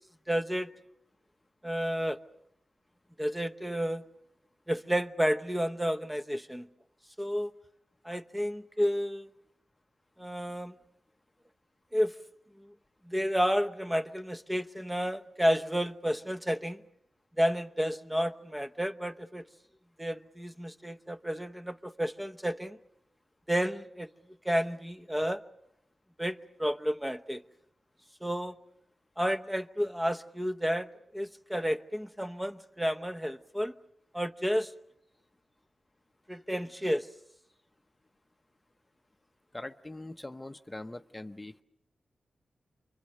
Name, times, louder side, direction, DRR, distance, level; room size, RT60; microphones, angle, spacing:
voice 1, 0.3-0.7 1.6-2.2 3.2-4.1 4.7-6.7 7.2-7.5 8.0-9.3 10.2-10.7 11.9-12.2 13.1-16.8 17.4-19.4 20.0-22.8 23.5-24.1 24.4-25.4 26.2-27.4 28.2-28.6 29.2-33.7 34.1-34.7 36.3-37.1, equal, 10° right, 0.9 m, -31 dB
voice 2, 39.5-41.6, left 2 dB, 20° left, 0.9 m, -42 dB
28.0 x 24.0 x 6.6 m
cardioid pair, 70°, 0 cm